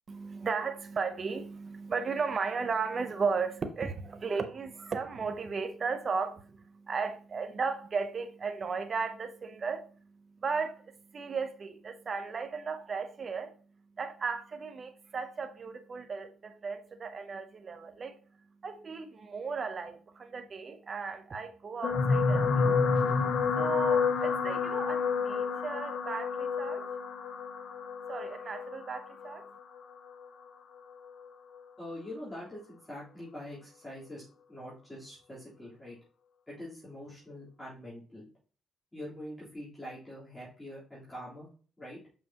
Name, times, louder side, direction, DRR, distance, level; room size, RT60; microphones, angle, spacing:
voice 1, 0.1-9.9 10.4-13.5 14.0-18.2 18.6-22.6 23.6-26.9 28.1-29.5, right 5 dB, 40° right, 0.7 m, -35 dB
sound 1, 21.8-30.3 31.0-31.3 31.6-31.7, left 5 dB, 65° left, 0.7 m, -29 dB
voice 2, 31.8-34.2 34.5-36.0 36.5-38.3 38.9-41.5 41.8-42.0, left 1 dB, 10° left, 3.6 m, -44 dB
6.3 x 5.7 x 2.9 m
cardioid pair, 90°, 0 cm